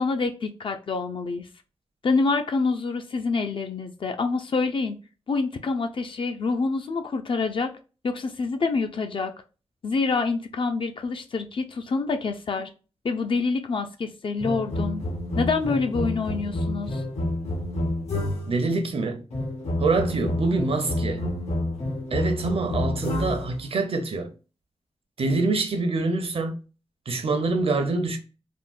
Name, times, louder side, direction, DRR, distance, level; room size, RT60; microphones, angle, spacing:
voice 1, 0.0-1.5 2.0-5.0 5.3-7.7 8.0-9.3 9.8-12.7 13.0-15.0 15.4-17.0, left 4 dB, 50° left, 0.4 m, -26 dB
sound 1, 14.4-18.6 19.3-23.6, left 1 dB, 85° left, 1.2 m, -29 dB
voice 2, 18.5-19.2 19.8-21.2 22.1-24.3 25.2-26.5 27.1-28.2, right 3 dB, 60° right, 0.6 m, -25 dB
3.5 x 2.1 x 2.4 m
wide cardioid pair, 130°, 11 cm